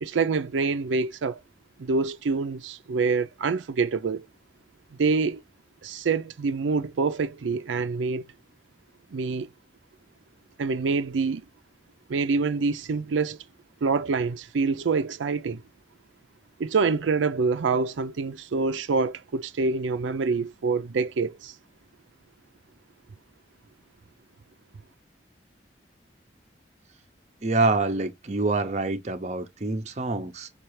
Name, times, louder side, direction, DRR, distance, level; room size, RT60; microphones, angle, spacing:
voice 1, 0.0-1.4 1.8-4.3 5.0-5.4 5.8-8.2 9.1-9.5 10.6-11.4 12.1-13.4 13.8-15.6 16.6-21.5, right 4 dB, 90° right, 0.5 m, -26 dB
voice 2, 27.4-30.5, right 3 dB, 40° right, 0.6 m, -26 dB
5.6 x 2.4 x 3.0 m
head